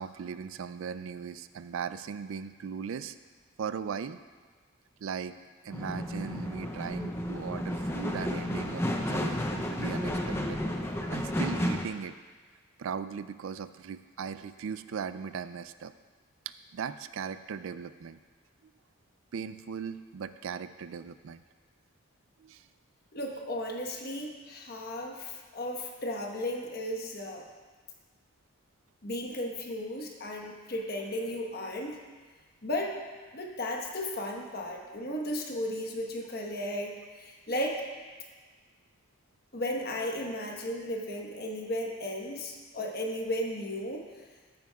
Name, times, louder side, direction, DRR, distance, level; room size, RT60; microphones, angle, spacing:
voice 1, 0.0-3.2 3.6-4.2 5.0-5.4 5.6-10.6 11.1-12.1 12.8-15.9 16.5-18.2 19.3-21.4 22.4-22.7, right 6 dB, 65° right, 12 dB, 0.3 m, -38 dB
sound 1, 5.7-11.8, left 1 dB, 10° left, 0.5 m, -32 dB
voice 2, 23.1-27.4 29.0-32.0 32.6-33.0 33.3-37.8 39.5-44.0, left 1 dB, 45° left, 0 dB, 1.2 m, -35 dB
14.5 x 9.1 x 2.3 m, 1.4 s
head